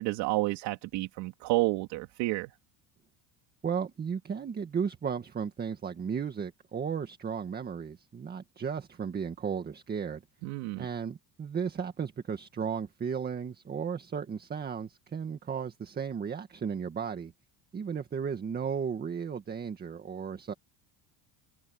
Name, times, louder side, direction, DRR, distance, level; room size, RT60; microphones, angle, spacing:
voice 1, 0.0-2.5 10.4-10.9, right 20 dB, 65° right, 2.8 m, -30 dB
voice 2, 3.6-10.2 10.8-17.3 17.7-20.5, right 6 dB, 20° right, 1.9 m, -34 dB
cardioid pair, 165°, 44 cm